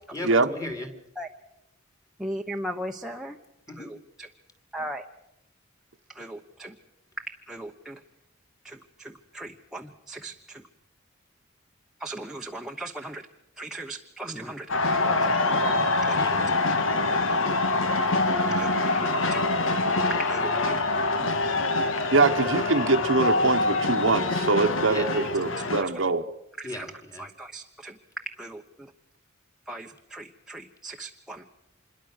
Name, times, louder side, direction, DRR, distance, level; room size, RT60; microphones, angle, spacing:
voice 1, 0.1-0.9 3.7-3.9 16.1-16.5 17.8-18.6 24.8-25.1 26.6-27.3, left 1 dB, 15° left, 6 dB, 2.8 m, -38 dB
voice 2, 2.2-3.3 3.8-4.3 4.7-5.0 6.1-6.7 7.2-8.0 8.6-10.6 12.0-13.3 13.6-14.7 15.1-16.5 18.6-18.7 18.9-19.5 20.1-20.8 25.8-25.9 26.6-26.9 27.2-28.9 29.7-31.4, right 1 dB, 5° right, 1 dB, 1.0 m, -38 dB
sound 1, 14.7-25.8, left 2 dB, 75° left, 1.7 m, -25 dB
voice 3, 22.1-26.2, right 3 dB, 70° right, 7 dB, 1.2 m, -23 dB
26.5 x 22.5 x 6.6 m, 0.88 s
head